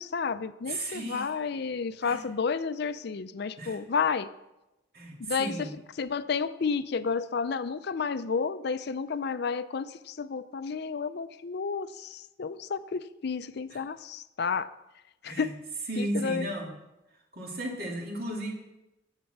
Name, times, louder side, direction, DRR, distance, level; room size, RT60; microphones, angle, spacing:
voice 1, 0.0-4.3 5.2-5.7 6.0-14.7 15.2-15.5 16.0-16.5, left 5 dB, 55° left, 13 dB, 0.4 m, -31 dB
voice 2, 0.7-1.3 2.0-2.2 3.6-3.8 4.9-5.7 13.7-13.8 15.2-15.5 15.9-16.7 17.3-18.5, right 1 dB, 50° right, 0 dB, 2.3 m, -34 dB
10.0 x 8.2 x 6.6 m, 0.96 s
head